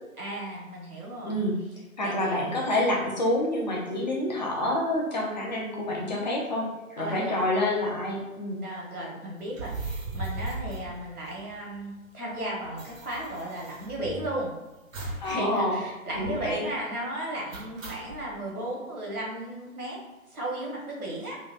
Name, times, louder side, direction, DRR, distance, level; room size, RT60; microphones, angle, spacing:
voice 1, 0.2-1.4 2.0-2.7 7.0-7.5 8.6-14.5 15.0-20.0 20.3-21.4, right 1 dB, 85° right, -3 dB, 1.3 m, -35 dB
voice 2, 2.0-8.6 15.2-15.8 16.1-16.6, left 1 dB, 30° left, -2 dB, 0.5 m, -28 dB
sound 1, 9.5-11.8 12.0-12.1 12.3-14.4 14.9-15.4 15.6-15.7 16.1-16.6 17.5-18.2, right 2 dB, 65° right, 0.8 m, -37 dB
3.8 x 2.2 x 2.5 m, 1.1 s
figure-of-eight pair, 145°, 43 cm